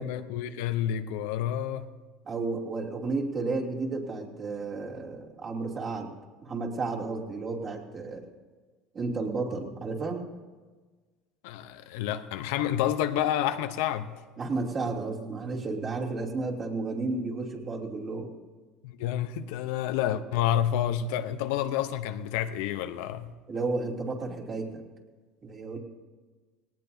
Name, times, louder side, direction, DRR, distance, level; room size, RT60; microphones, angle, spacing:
voice 1, 0.0-1.9 11.4-14.2 18.8-23.3, left 11 dB, 80° left, 0.8 m, -29 dB
voice 2, 2.2-6.1 6.4-8.2 8.9-10.2 14.4-18.3 23.5-24.8 25.4-25.8, right 3 dB, 35° right, 2.9 m, -32 dB
19.0 x 18.5 x 2.8 m
supercardioid pair, 105°, 0 cm